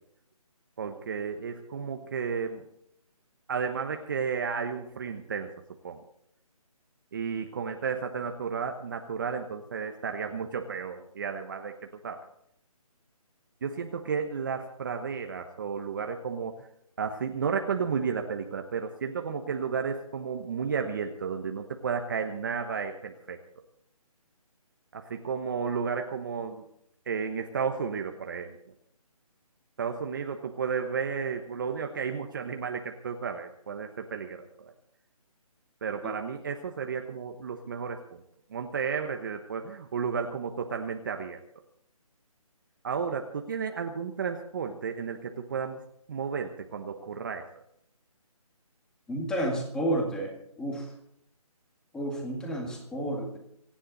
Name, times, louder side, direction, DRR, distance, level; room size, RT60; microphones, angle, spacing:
voice 1, 0.8-2.7 3.5-5.5 5.8-6.0 7.1-11.7 12.0-12.2 13.6-16.7 17.0-23.4 24.9-26.6 27.1-28.6 29.8-34.5 35.8-38.2 38.5-41.4 42.8-45.8 46.1-47.5, right 6 dB, 35° right, 5 dB, 1.1 m, -32 dB
voice 2, 49.1-50.3 50.6-50.9 51.9-53.4, right 1 dB, 5° left, 0 dB, 1.9 m, -30 dB
27.5 x 10.0 x 4.1 m, 0.75 s
figure-of-eight pair, 165°, 19 cm